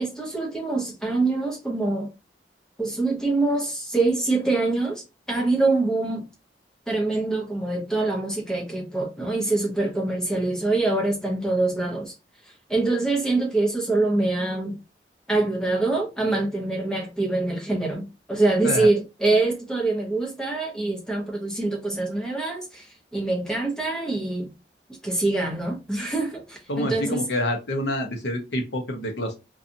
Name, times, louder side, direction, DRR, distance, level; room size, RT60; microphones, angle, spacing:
voice 1, 0.0-2.1 2.8-5.0 5.3-6.2 6.9-12.1 12.7-14.8 15.3-22.9 23.1-24.5 25.0-27.3, right 2 dB, 5° left, 0.7 m, -24 dB
voice 2, 26.7-29.4, left 1 dB, 85° left, 0.8 m, -27 dB
2.7 x 2.3 x 2.6 m
head